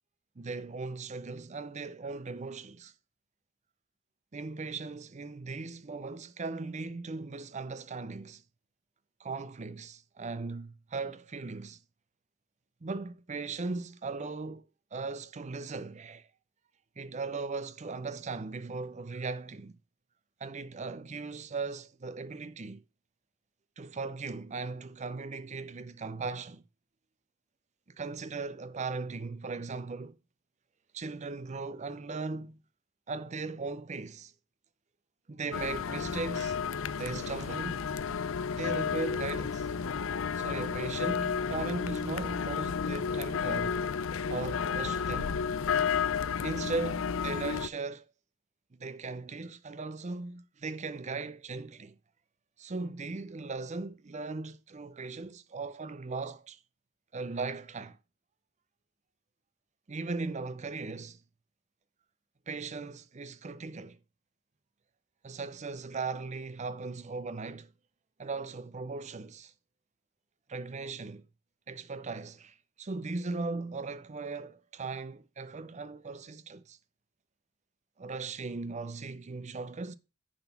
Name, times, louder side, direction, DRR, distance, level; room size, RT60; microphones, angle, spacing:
voice 1, 0.4-2.9 4.3-8.4 9.2-11.8 12.8-16.3 17.0-19.8 20.4-22.8 23.8-26.6 28.0-30.2 30.9-32.6 33.1-34.3 35.3-36.6 37.0-37.8 38.5-39.7 40.4-43.9 44.3-45.4 46.4-48.1 48.8-52.0 52.6-56.6 57.1-58.0 59.9-61.2 62.5-64.0 65.2-67.7 68.2-69.5 70.5-71.2 71.7-76.8 78.0-79.9, right 3 dB, 35° right, 0.6 m, -38 dB
sound 1, 35.5-47.7, left 6 dB, 90° left, 0.5 m, -32 dB
10.5 x 4.1 x 5.7 m
head